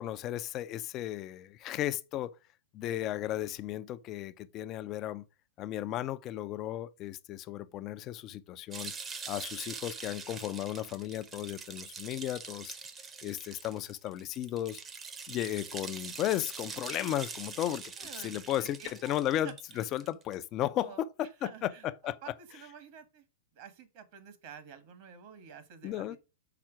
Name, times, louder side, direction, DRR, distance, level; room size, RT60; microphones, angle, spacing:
voice 1, 0.0-2.4 2.7-5.2 5.6-8.9 9.3-12.7 13.2-14.8 15.3-17.8 18.2-19.5 19.8-20.9 21.2-21.7 22.0-22.1 25.8-26.2, left 13 dB, 35° left, 0.6 m, -34 dB
sound 1, 8.7-20.3, right 5 dB, 20° right, 0.9 m, -44 dB
voice 2, 18.0-19.9 20.8-23.2 23.5-26.2, right 7 dB, 50° right, 1.5 m, -50 dB
5.9 x 4.3 x 6.1 m
hypercardioid pair, 115°, 0 cm